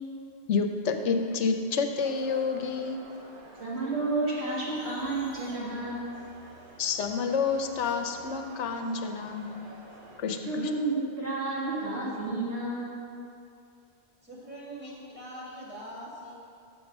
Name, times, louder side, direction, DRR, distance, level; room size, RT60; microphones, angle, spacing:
voice 1, 0.5-3.0 6.8-9.7 10.2-10.7, left 5 dB, 90° left, 5 dB, 1.0 m, -29 dB
Crowd, 2.0-10.2, right 2 dB, 50° right, 1.2 m, -49 dB
voice 2, 3.6-6.1 10.4-13.0, right 2 dB, 65° right, -7 dB, 1.9 m, -31 dB
voice 3, 14.2-16.3, equal, 10° right, -7 dB, 1.9 m, -42 dB
6.9 x 6.4 x 6.0 m, 2.5 s
omnidirectional pair, 1.2 m